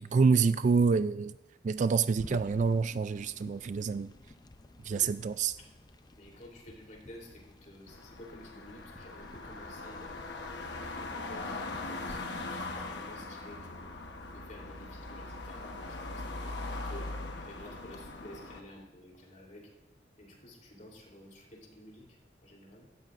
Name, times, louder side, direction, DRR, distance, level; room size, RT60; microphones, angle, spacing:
voice 1, 0.0-1.3 1.6-4.1 4.8-5.5, right 5 dB, 45° right, 0.3 m, -27 dB
sound 1, 2.2-12.2, left 2 dB, 25° left, 0.5 m, -52 dB
voice 2, 6.2-10.4 10.7-13.9 14.3-17.1 17.4-19.7 20.2-22.9, left 1 dB, 45° left, 3.4 m, -52 dB
sound 2, 7.9-18.6, left 2 dB, 75° left, 1.1 m, -40 dB
17.0 x 13.0 x 2.5 m
head